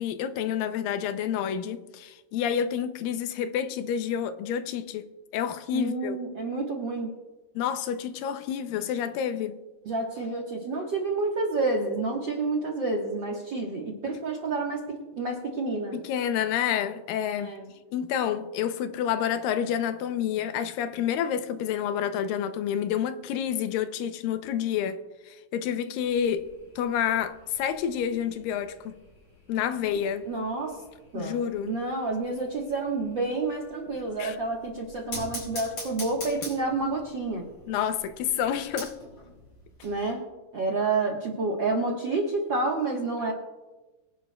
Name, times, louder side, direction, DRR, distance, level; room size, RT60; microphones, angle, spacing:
voice 1, 0.0-5.0 5.3-6.2 7.6-9.6 15.9-17.5 17.9-25.0 25.3-28.9 29.5-30.2 31.1-31.8 34.2-34.4 37.7-38.9, left 9 dB, 80° left, 2.4 m, -29 dB
voice 2, 5.7-7.1 9.8-16.0 17.4-17.7 30.2-30.8 31.1-31.4 31.7-37.5 39.8-40.2 40.5-43.3, right 3 dB, 55° right, 1.3 m, -29 dB
sound 1, 26.0-40.0, left 2 dB, 40° left, 5.7 m, -45 dB
23.5 x 11.0 x 2.3 m
omnidirectional pair, 4.0 m